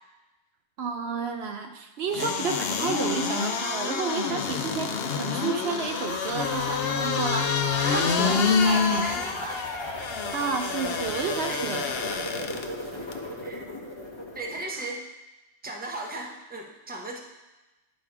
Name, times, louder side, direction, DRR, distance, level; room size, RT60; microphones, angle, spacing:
voice 1, 0.8-9.1 10.3-11.9 14.8-14.9, right 5 dB, 65° right, 5 dB, 0.8 m, -31 dB
sound 1, 2.1-12.6 13.1-13.2, left 6 dB, 65° left, 0.8 m, -27 dB
sound 2, 6.1-14.6, left 1 dB, 25° left, 1.0 m, -36 dB
voice 2, 7.8-8.4 8.7-9.6 11.5-11.9 13.4-13.6 14.3-15.0 15.6-17.2, right 2 dB, 10° right, 0 dB, 0.8 m, -37 dB
10.0 x 4.2 x 4.8 m, 1.1 s
omnidirectional pair, 1.2 m